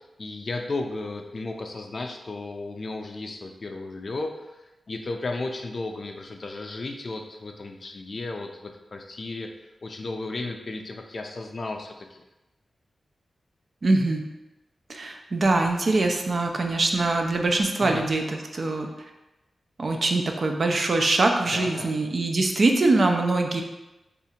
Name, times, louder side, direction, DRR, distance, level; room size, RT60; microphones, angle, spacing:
voice 1, 0.0-4.6 4.9-9.5 9.8-12.2 17.8-18.0 21.5-22.0, left 2 dB, 50° left, 4 dB, 0.4 m, -34 dB
voice 2, 13.8-14.2 14.9-18.9 19.8-23.6, right 2 dB, 50° right, 3 dB, 0.4 m, -23 dB
2.7 x 2.4 x 4.1 m, 1.0 s
wide cardioid pair, 95°, 0 cm